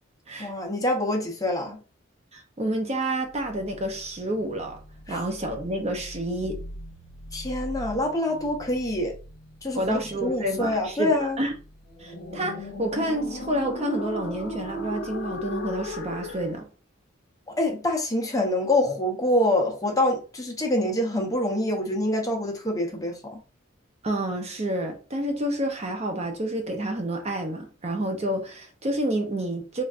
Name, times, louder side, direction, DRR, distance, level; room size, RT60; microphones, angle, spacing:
voice 1, 0.4-1.8 5.1-5.2 7.3-9.1 9.6-11.4 17.6-23.4, left 1 dB, 20° left, 0.7 m, -25 dB
voice 2, 2.3-4.8 5.1-6.6 9.8-11.5 12.0-16.7 24.0-29.8, right 1 dB, 35° right, 0.6 m, -29 dB
sound 1, 3.3-16.6, left 1 dB, 65° left, 0.7 m, -39 dB
3.3 x 2.5 x 2.4 m
head